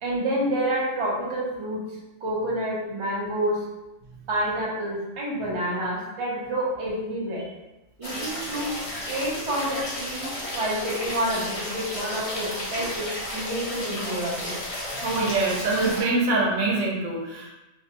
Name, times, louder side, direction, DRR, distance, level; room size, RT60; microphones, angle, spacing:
voice 1, 0.0-1.8 2.2-3.6 4.3-7.4 8.0-8.8 9.0-10.3 10.5-14.6, right 1 dB, 35° right, -5 dB, 0.5 m, -28 dB
sound 1, 8.0-16.0, left 1 dB, 40° left, 0.5 m, -33 dB
voice 2, 14.9-17.5, right 2 dB, 85° right, -2 dB, 1.0 m, -24 dB
2.4 x 2.2 x 2.8 m, 1.0 s
omnidirectional pair, 1.3 m